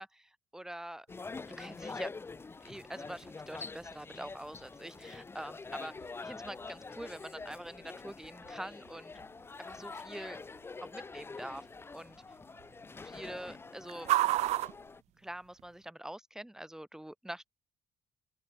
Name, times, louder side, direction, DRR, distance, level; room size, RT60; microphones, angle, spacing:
voice 1, 0.0-2.1 2.6-5.9 6.2-9.1 9.6-10.4 10.8-11.7 11.9-12.2 13.0-14.1 15.2-17.5, right 1 dB, 5° right, 7.5 m, -45 dB
sound 1, 1.1-15.0, left 4 dB, 20° left, 2.1 m, -46 dB
sound 2, 1.1-15.9, right 15 dB, 75° right, 2.4 m, -40 dB
open air
cardioid pair, 120°, 11 cm